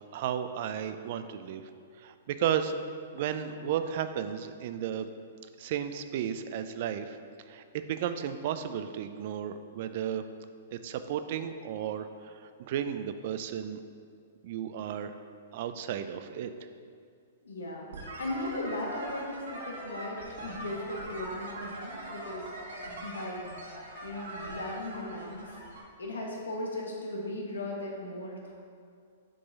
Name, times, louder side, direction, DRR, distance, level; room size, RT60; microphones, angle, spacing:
voice 1, 0.1-1.6 2.0-2.8 3.1-5.1 5.6-7.2 7.5-10.2 10.7-13.8 14.4-15.2 15.5-16.5, right 9 dB, 55° right, 10 dB, 0.4 m, -33 dB
voice 2, 17.4-22.5 22.8-25.6 26.0-28.5, left 1 dB, 90° left, -2 dB, 1.3 m, -37 dB
sound 1, 17.9-25.8, right 1 dB, 80° right, 1.4 m, -42 dB
6.8 x 3.8 x 4.0 m, 2.2 s
hypercardioid pair, 130°, 0 cm